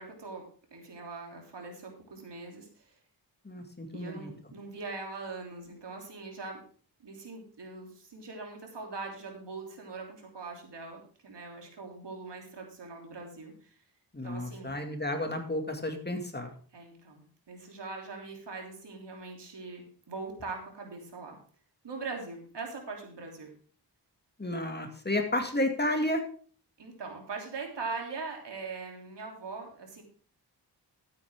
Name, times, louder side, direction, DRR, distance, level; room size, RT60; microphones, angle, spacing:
voice 1, 0.0-2.9 3.9-6.6 7.0-13.8 14.2-14.7 16.7-21.4 21.8-23.5 26.8-30.0, right 4 dB, 80° right, 1 dB, 3.3 m, -41 dB
voice 2, 3.4-4.3 14.1-16.5 24.4-26.2, left 1 dB, 25° left, 4 dB, 2.3 m, -32 dB
13.0 x 9.5 x 3.6 m, 0.43 s
wide cardioid pair, 95°, 42 cm